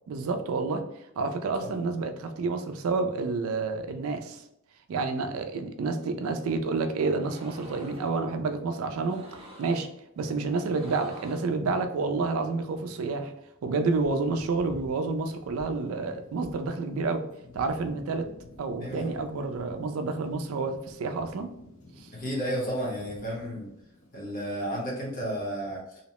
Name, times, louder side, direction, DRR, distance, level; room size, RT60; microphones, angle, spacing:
voice 1, 0.1-0.8 1.2-4.4 4.9-9.2 9.6-9.9 10.2-13.3 13.6-17.2 17.5-18.3 18.6-21.5 22.0-22.1, right 3 dB, 70° right, 7 dB, 0.3 m, -29 dB
sound 1, 7.2-8.1 9.0-9.9 10.5-11.6, equal, 25° right, 0.7 m, -47 dB
Thunder, 13.8-25.4, left 1 dB, 70° left, 0.8 m, -51 dB
voice 2, 18.8-19.1 22.1-23.7 24.1-26.0, equal, 40° left, -3 dB, 0.9 m, -32 dB
2.7 x 2.0 x 2.9 m, 0.79 s
head